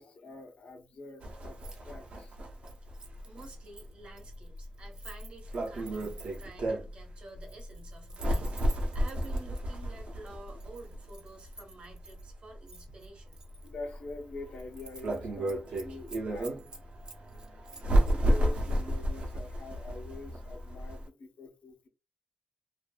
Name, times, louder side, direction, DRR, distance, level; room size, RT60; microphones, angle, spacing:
voice 1, 0.0-2.3 3.0-3.5 13.6-16.5 17.8-21.9, left 3 dB, 80° left, 0.7 m, -45 dB
sound 1, 1.2-21.0, right 1 dB, 80° right, 0.7 m, -33 dB
Keys jangling, 1.5-1.8 2.1-6.6 7.3-9.6 10.3-12.2 12.7-13.7 14.1-14.2 14.5-15.2 15.5-18.2 18.5-18.7, right 4 dB, 40° right, 0.6 m, -52 dB
voice 2, 3.3-13.4, right 2 dB, 60° right, 1.0 m, -50 dB
2.5 x 2.5 x 2.2 m
wide cardioid pair, 155°, 2 cm